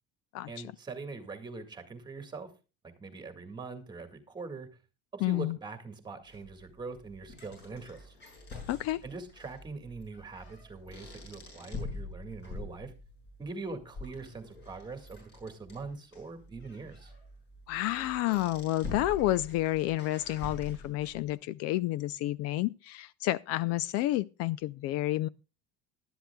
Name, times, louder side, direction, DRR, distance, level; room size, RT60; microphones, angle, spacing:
voice 1, 0.5-2.5 2.8-4.7 5.1-8.2 9.0-12.9 13.4-17.1, right 3 dB, 15° right, 1.9 m, -43 dB
voice 2, 5.2-5.6 8.7-9.0 17.7-25.3, left 15 dB, 55° left, 0.5 m, -30 dB
sound 1, 6.3-21.3, left 3 dB, 35° left, 7.8 m, -45 dB
19.0 x 12.0 x 2.3 m
cardioid pair, 170°, 29 cm